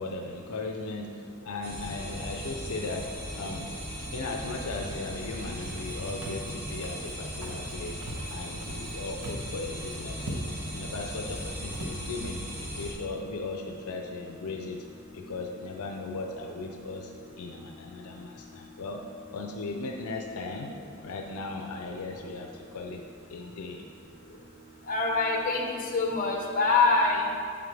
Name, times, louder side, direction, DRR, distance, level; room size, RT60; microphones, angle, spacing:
voice 1, 0.0-3.7 4.1-8.0 8.3-10.4 10.7-12.4 12.8-14.8 15.1-17.1 17.4-19.0 19.3-20.7 21.0-23.0 23.3-23.8, left 3 dB, 80° left, 3 dB, 0.5 m, -37 dB
sound 1, 1.6-12.9, equal, 40° right, 2.1 m, -38 dB
Walk footsteps, 5.6-5.9 6.2-6.5 6.8-7.1 7.4-7.7 8.0-8.9 9.2-9.6 9.8-9.9 10.2-10.7 11.3-11.4 11.7-12.0, right 1 dB, 85° right, 1.1 m, -40 dB
voice 2, 24.9-25.6 25.9-27.2, left 3 dB, 40° left, 1 dB, 1.1 m, -24 dB
8.7 x 6.9 x 3.4 m, 2.3 s
head